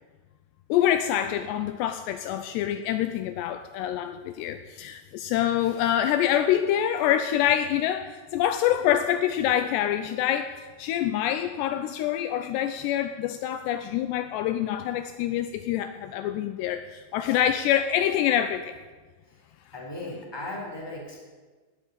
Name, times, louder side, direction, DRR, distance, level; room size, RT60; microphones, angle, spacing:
voice 1, 0.7-10.5 10.8-18.7, left 11 dB, 90° left, 10 dB, 2.4 m, -26 dB
voice 2, 19.7-21.2, left 2 dB, 5° left, -1 dB, 3.1 m, -37 dB
18.5 x 9.5 x 8.1 m, 1.4 s
omnidirectional pair, 5.6 m